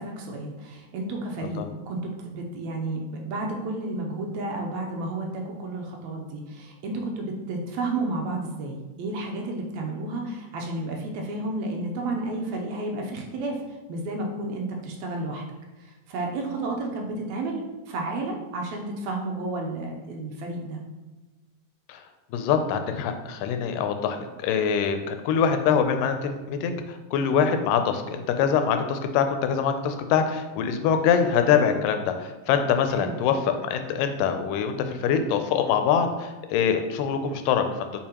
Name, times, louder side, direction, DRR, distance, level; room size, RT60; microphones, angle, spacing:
voice 1, 0.0-15.4 15.8-20.8 32.9-33.2, right 2 dB, 80° right, 1 dB, 1.6 m, -32 dB
voice 2, 22.3-37.9, left 7 dB, 80° left, 7 dB, 2.1 m, -24 dB
7.4 x 4.4 x 2.9 m, 1.2 s
omnidirectional pair, 3.9 m